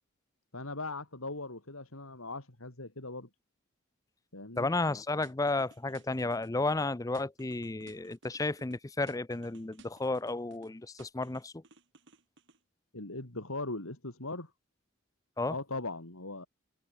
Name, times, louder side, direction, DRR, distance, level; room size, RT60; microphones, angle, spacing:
voice 1, 0.5-3.3 4.3-4.7 12.9-14.5 15.5-16.5, left 2 dB, 80° left, 3.6 m, -39 dB
voice 2, 4.6-11.6 15.4-15.6, left 2 dB, 15° left, 0.5 m, -32 dB
sound 1, 5.2-6.8 7.1-8.8 9.1-10.7 11.0-12.6, right 3 dB, 60° right, 6.2 m, -58 dB
head